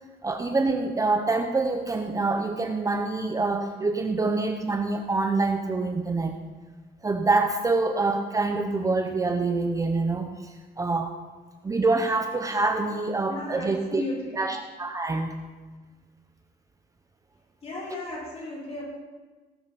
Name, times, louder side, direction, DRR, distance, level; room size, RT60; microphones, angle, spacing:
voice 1, 0.2-6.4 7.0-11.1 11.6-14.0 14.3-15.4, right 3 dB, 20° right, 5 dB, 0.8 m, -26 dB
voice 2, 13.3-14.3 17.6-18.8, left 2 dB, 35° left, -4 dB, 5.0 m, -35 dB
17.5 x 9.1 x 4.2 m, 1.3 s
cardioid pair, 110°, 17 cm